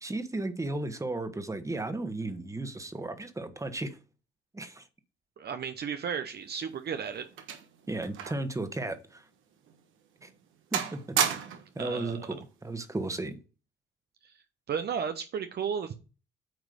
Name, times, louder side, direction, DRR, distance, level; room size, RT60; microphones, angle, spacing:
voice 1, 0.0-4.0 4.5-4.8 7.9-9.2 10.2-10.3 10.7-11.2 11.7-13.4, right 2 dB, 15° right, 1.4 m, -34 dB
voice 2, 5.4-7.2 11.8-12.3 14.2-14.3 14.7-15.9, right 7 dB, 55° right, 0.8 m, -34 dB
sound 1, 6.4-8.5 8.8-9.0 9.6-9.8 10.2-10.5 10.7-11.8 12.8-13.1, right 8 dB, 80° right, 1.4 m, -33 dB
9.3 x 3.1 x 6.4 m
cardioid pair, 90°, 20 cm